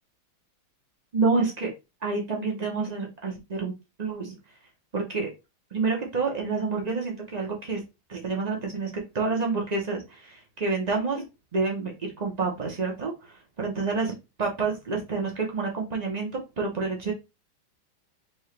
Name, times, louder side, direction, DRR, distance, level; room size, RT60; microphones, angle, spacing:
voice 1, 1.1-1.7 2.0-3.7 4.0-4.4 4.9-5.3 5.7-7.8 8.1-11.2 11.5-14.1 14.4-17.1, right 4 dB, 80° right, -1 dB, 0.3 m, -28 dB
4.4 x 2.8 x 3.2 m, 0.25 s
omnidirectional pair, 2.2 m